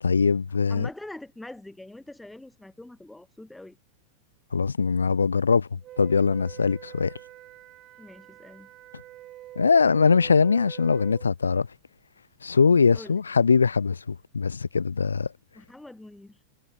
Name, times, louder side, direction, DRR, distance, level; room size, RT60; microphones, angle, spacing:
voice 1, 0.0-0.9 4.5-7.1 9.6-11.7 12.4-15.3, left 5 dB, 75° left, 0.8 m, -22 dB
voice 2, 0.7-3.8 8.0-8.7 12.9-13.2 15.5-16.4, left 1 dB, 5° left, 3.9 m, -44 dB
Wind instrument woodwind instrument, 5.8-11.3, right 14 dB, 35° right, 1.5 m, -45 dB
figure-of-eight pair, 90°, 0 cm